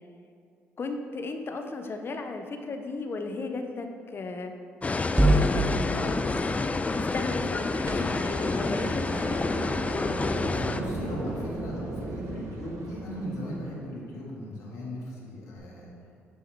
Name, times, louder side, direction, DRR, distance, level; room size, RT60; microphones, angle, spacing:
voice 1, 0.8-4.5 5.3-6.3 6.9-9.5, left 3 dB, 45° left, 5 dB, 0.8 m, -35 dB
sound 1, 4.8-10.8, left 3 dB, 25° left, 0.4 m, -28 dB
sound 2, 5.2-9.5, right 1 dB, 10° right, 0.8 m, -29 dB
sound 3, 7.8-14.0 15.6-15.7, right 2 dB, 60° right, 0.9 m, -38 dB
voice 2, 10.5-15.9, equal, 70° left, -4 dB, 1.7 m, -36 dB
9.2 x 3.6 x 4.5 m, 2.4 s
hypercardioid pair, 45°, 6 cm